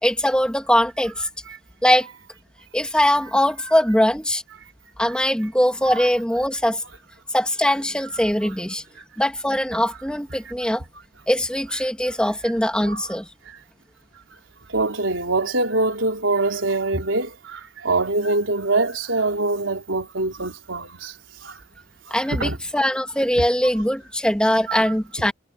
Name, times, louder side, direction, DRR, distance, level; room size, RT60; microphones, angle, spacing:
voice 1, 0.0-1.3 1.8-2.1 2.7-4.4 5.0-6.8 7.3-8.8 9.2-10.8 11.3-13.3 22.1-25.3, equal, 5° left, 2.3 m, -21 dB
voice 2, 14.7-21.2 21.4-21.6 22.1-22.6 24.7-24.8 25.2-25.3, right 2 dB, 80° right, 3.9 m, -24 dB
head